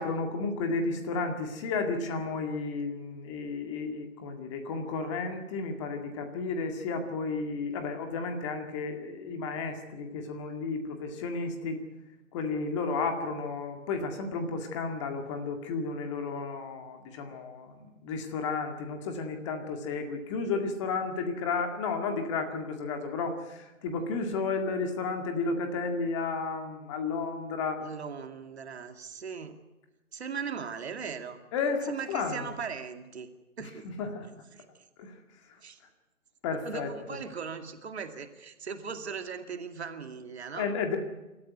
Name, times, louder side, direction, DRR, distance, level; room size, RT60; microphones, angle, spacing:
voice 1, 0.0-11.8 12.3-27.8 31.5-32.6 34.0-34.3 35.0-35.1 36.4-36.9 40.6-41.0, left 4 dB, 20° left, 5 dB, 2.0 m, -32 dB
voice 2, 27.8-29.6 30.1-31.4 31.9-33.3 33.6-33.9 34.5-34.6 35.6-35.8 36.6-40.7, right 6 dB, 50° right, 7 dB, 2.4 m, -39 dB
26.0 x 13.5 x 9.4 m, 1.1 s
figure-of-eight pair, 150°, 42 cm